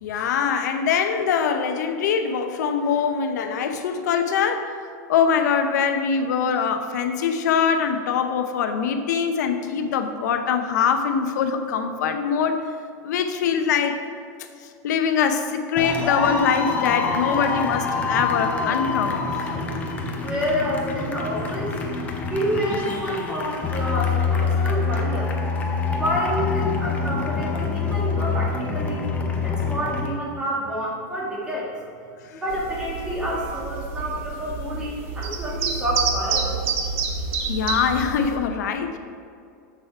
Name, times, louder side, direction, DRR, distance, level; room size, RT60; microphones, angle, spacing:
voice 1, 0.0-4.7 5.1-12.7 13.0-14.0 14.8-19.4 32.3-32.4 37.5-39.0, left 6 dB, 70° left, 7 dB, 0.8 m, -23 dB
sound 1, 15.8-30.1, left 4 dB, 15° left, 0.6 m, -26 dB
voice 2, 20.2-21.8 22.3-25.3 26.0-29.1 29.4-31.7 32.3-36.6, equal, 10° right, -5 dB, 1.5 m, -28 dB
sound 2, 32.5-38.4, right 5 dB, 45° right, 0.9 m, -28 dB
7.1 x 7.0 x 4.6 m, 2.4 s
supercardioid pair, 175°, 10 cm